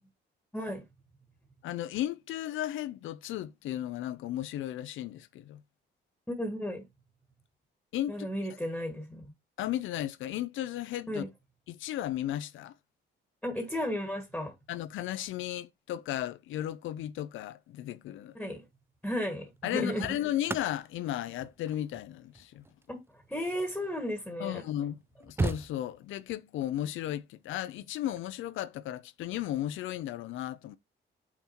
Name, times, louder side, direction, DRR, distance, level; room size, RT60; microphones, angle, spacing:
voice 1, 0.5-0.8 6.3-6.8 8.1-9.2 11.1-11.3 13.4-14.5 18.3-18.6 19.0-20.1 22.9-24.6, equal, 5° left, 1.6 m, -34 dB
voice 2, 1.6-5.6 7.9-8.1 9.6-11.2 11.7-12.7 14.7-18.3 19.6-22.6 24.4-30.8, left 12 dB, 80° left, 0.6 m, -35 dB
sound 1, 18.4-18.7 19.6-24.2 24.7-24.8 25.0-26.3 28.0-28.2, right 3 dB, 10° right, 0.4 m, -38 dB
5.9 x 4.2 x 4.3 m
cardioid pair, 90°, 20 cm